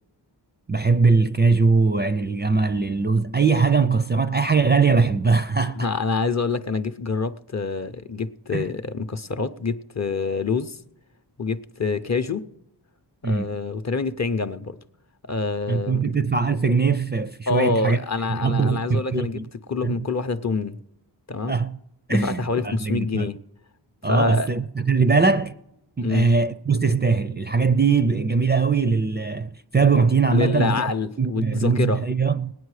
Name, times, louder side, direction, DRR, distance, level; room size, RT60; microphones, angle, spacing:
voice 1, 0.7-5.9 8.5-8.7 13.2-13.5 15.7-18.0 18.3-19.4 19.8-19.9 21.5-21.8 22.1-23.3 24.0-25.6 26.0-30.9 31.2-32.5, right 4 dB, 25° right, 0.4 m, -21 dB
voice 2, 5.8-10.8 11.4-12.5 13.2-14.8 15.3-16.0 17.5-19.4 19.7-20.8 21.3-21.6 22.1-23.4 24.0-24.5 26.0-26.3 30.3-32.0, left 4 dB, 40° left, 0.6 m, -26 dB
19.5 x 9.3 x 4.8 m
wide cardioid pair, 55°, 44 cm